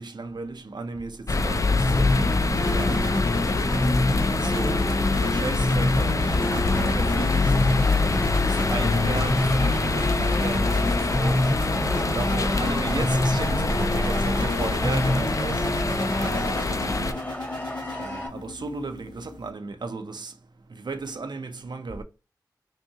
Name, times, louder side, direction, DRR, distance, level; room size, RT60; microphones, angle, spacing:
voice 1, 0.0-3.1 4.3-4.8 5.2-7.5 8.0-11.5 12.1-15.8 16.2-17.2 18.0-20.3 20.8-22.0, right 3 dB, 75° right, 0.5 m, -35 dB
sound 1, 1.3-17.1, left 3 dB, 45° left, 0.3 m, -24 dB
sound 2, 1.8-19.5, left 1 dB, 75° left, 1.3 m, -28 dB
sound 3, 6.3-18.3, left 1 dB, 25° left, 0.9 m, -35 dB
3.5 x 2.7 x 2.7 m
wide cardioid pair, 60°, 8 cm